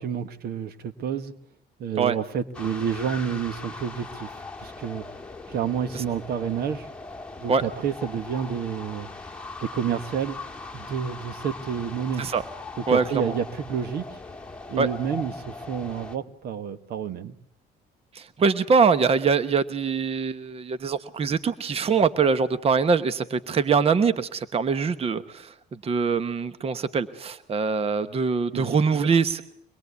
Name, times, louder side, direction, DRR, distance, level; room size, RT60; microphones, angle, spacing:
voice 1, 0.0-1.3 1.8-4.3 4.6-5.0 5.5-6.9 7.4-9.1 9.6-10.4 10.7-12.2 12.9-14.1 14.7-17.4 28.5-29.1, right 7 dB, 65° right, 13 dB, 1.5 m, -29 dB
sound 1, 2.5-16.2, left 3 dB, 5° left, 1.9 m, -40 dB
voice 2, 12.9-13.3 14.8-14.9 18.1-25.5 25.8-29.4, right 5 dB, 35° right, 13 dB, 1.1 m, -23 dB
24.0 x 21.5 x 8.3 m, 0.69 s
cardioid pair, 110°, 17 cm